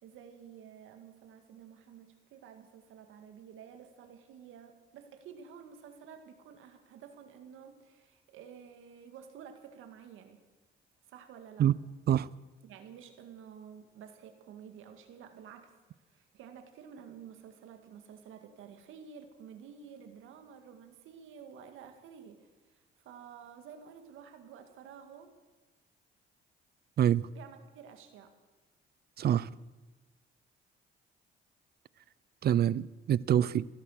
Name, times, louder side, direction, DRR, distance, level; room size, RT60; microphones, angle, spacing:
voice 1, 0.0-10.4 11.1-11.7 12.6-15.7 16.1-25.3 27.3-28.3, right 7 dB, 85° right, 1.9 m, -51 dB
voice 2, 27.0-27.3 29.2-29.5 32.4-33.7, right 10 dB, 55° right, 0.5 m, -26 dB
15.5 x 13.0 x 6.4 m
cardioid pair, 90°, 20 cm